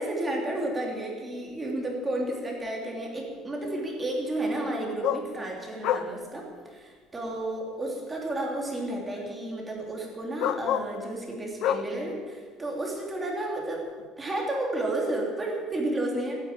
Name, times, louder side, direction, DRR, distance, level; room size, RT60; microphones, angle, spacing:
voice 1, 0.0-13.9 14.2-16.4, right 1 dB, 15° right, -1 dB, 3.3 m, -32 dB
sound 1, 2.2-2.3 5.0-5.3 5.8-6.1 7.3-7.4 9.2-9.3 10.4-11.0 11.6-11.9 14.0-14.1, left 10 dB, 55° left, 0.8 m, -28 dB
15.5 x 9.8 x 8.6 m, 1.5 s
cardioid pair, 165°, 0 cm